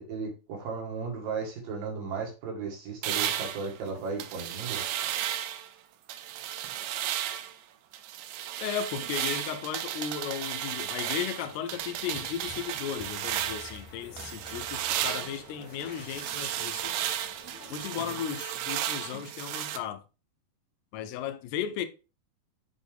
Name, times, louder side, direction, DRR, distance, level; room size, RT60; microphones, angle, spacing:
voice 1, 0.0-4.8, right 5 dB, 65° right, 3.1 m, -35 dB
sound 1, 3.0-5.7 6.1-7.6 7.9-13.8 14.2-19.8, right 11 dB, 90° right, 2.0 m, -34 dB
voice 2, 8.6-17.0 17.7-20.0 20.9-21.9, left 9 dB, 85° left, 2.7 m, -35 dB
sound 2, 11.7-18.2, left 3 dB, 60° left, 1.1 m, -50 dB
7.4 x 4.1 x 3.4 m
omnidirectional pair, 4.6 m